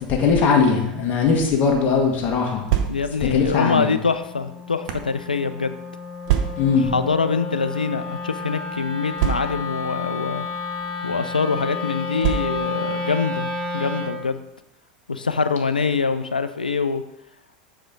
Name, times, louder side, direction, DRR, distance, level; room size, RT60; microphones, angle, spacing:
voice 1, 0.1-2.6 3.3-3.9 6.6-6.9, left 5 dB, 40° left, 0 dB, 1.6 m, -19 dB
Wind instrument woodwind instrument, 2.6-14.2, left 3 dB, 25° left, 0.9 m, -32 dB
sound 1, 2.7-3.3 4.1-5.1 6.3-6.9 7.7-8.2 9.2-9.8 10.7-10.9 12.2-12.8, right 11 dB, 60° right, 0.7 m, -25 dB
voice 2, 2.9-5.8 6.9-10.5 11.0-14.4 15.1-17.0, left 5 dB, 90° left, 11 dB, 0.4 m, -24 dB
7.2 x 4.8 x 3.9 m, 0.85 s
figure-of-eight pair, 80°, 5 cm